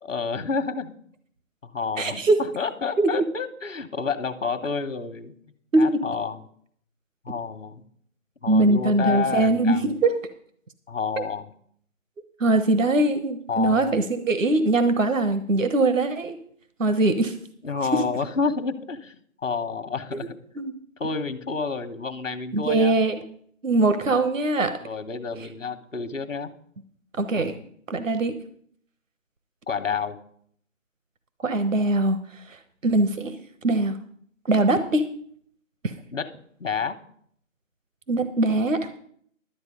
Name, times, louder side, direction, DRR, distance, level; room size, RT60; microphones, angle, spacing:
voice 1, 0.0-0.9 1.6-5.3 5.8-6.4 7.2-7.8 8.4-9.9 10.9-11.5 13.5-13.9 17.6-20.4 21.0-22.9 24.1-24.2 24.8-26.5 27.3-27.6 29.7-30.2 36.1-36.3 36.6-37.0, left 5 dB, 70° left, 9 dB, 1.3 m, -29 dB
voice 2, 2.0-2.4 3.0-3.2 5.7-6.0 8.5-10.1 11.2-11.3 12.4-16.4 16.8-17.4 17.9-18.0 20.1-20.3 20.6-20.7 22.5-23.1 23.6-24.8 27.2-27.5 27.9-28.4 31.4-32.6 32.8-33.3 33.6-34.0 34.5-35.1 35.8-35.9 38.1-38.9, right 2 dB, 70° right, 10 dB, 1.2 m, -22 dB
12.5 x 8.3 x 5.2 m, 0.62 s
figure-of-eight pair, 155°, 40 cm